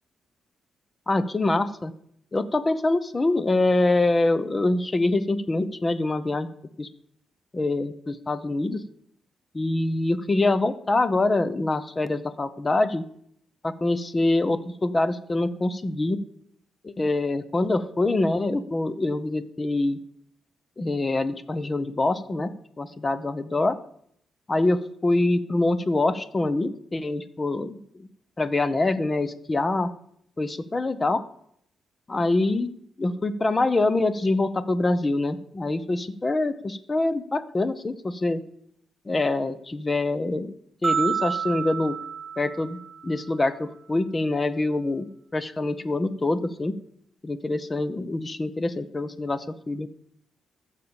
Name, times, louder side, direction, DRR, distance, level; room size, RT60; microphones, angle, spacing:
voice 1, 1.1-1.9 2.3-6.5 6.8-6.9 7.5-8.8 9.5-13.0 13.6-16.2 16.8-20.0 20.8-23.8 24.5-28.1 28.4-29.9 30.4-31.2 32.1-32.7 33.0-38.4 39.0-40.6 40.8-42.0 42.4-42.8 43.0-46.7 47.2-49.9, left 2 dB, 20° left, 13 dB, 0.8 m, -25 dB
sound 1, 40.8-43.2, right 6 dB, 25° right, 1.9 m, -29 dB
13.5 x 7.4 x 7.0 m, 0.70 s
cardioid pair, 135°, 0 cm